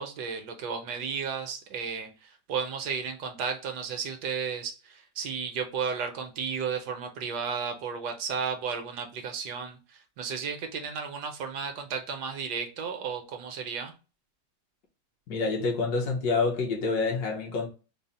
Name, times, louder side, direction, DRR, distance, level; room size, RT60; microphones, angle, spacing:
voice 1, 0.0-13.9, right 6 dB, 75° right, 1.2 m, -33 dB
voice 2, 15.3-17.7, left 4 dB, 65° left, 1.4 m, -27 dB
4.0 x 2.0 x 4.0 m
omnidirectional pair, 1.8 m